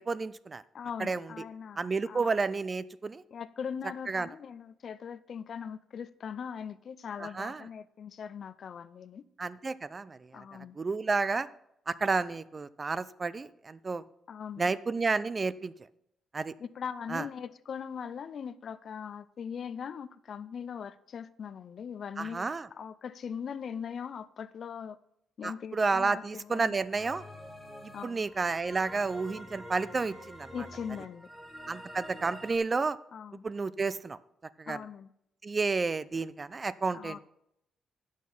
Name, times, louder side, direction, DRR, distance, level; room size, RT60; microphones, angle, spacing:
voice 1, 0.0-0.6 1.0-1.3 1.8-3.2 4.1-4.3 7.2-7.6 9.4-10.4 10.8-11.5 11.9-14.0 14.6-15.7 16.3-16.5 17.1-17.3 22.2-22.7 25.4-27.2 27.8-30.5 31.7-33.0 33.4-34.2 34.6-34.8 35.4-37.2, right 4 dB, 30° right, 0.4 m, -31 dB
voice 2, 0.7-2.3 3.3-9.3 10.3-10.8 14.3-14.7 16.6-25.0 25.4-26.8 27.9-28.2 30.5-31.3 33.1-33.5 34.7-35.1 36.9-37.2, left 7 dB, 55° left, 0.4 m, -40 dB
sound 1, 26.9-32.6, equal, 5° right, 1.6 m, -47 dB
8.5 x 6.3 x 5.4 m
cardioid pair, 90°, 0 cm